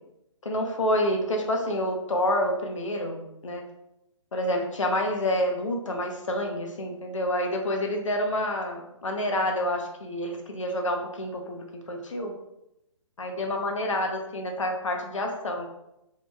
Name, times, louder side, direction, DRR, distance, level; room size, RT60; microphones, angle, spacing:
voice 1, 0.4-3.6 4.3-12.3 13.2-15.7, left 1 dB, 70° left, 3 dB, 0.6 m, -28 dB
2.8 x 2.7 x 2.2 m, 0.87 s
figure-of-eight pair, 140°, 17 cm